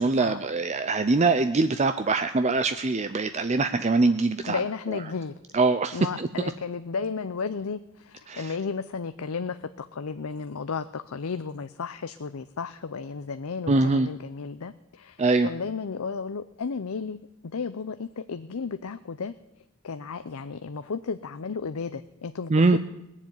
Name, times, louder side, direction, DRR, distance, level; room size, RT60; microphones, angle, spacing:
voice 1, 0.0-4.6 5.5-6.3 8.3-8.5 13.7-14.1 15.2-15.5 22.5-22.8, right 3 dB, 30° right, 10 dB, 0.5 m, -23 dB
voice 2, 4.5-5.3 5.9-17.2 17.4-19.3 19.8-22.8, left 5 dB, 75° left, 11 dB, 0.6 m, -33 dB
19.5 x 7.4 x 9.4 m, 0.93 s
head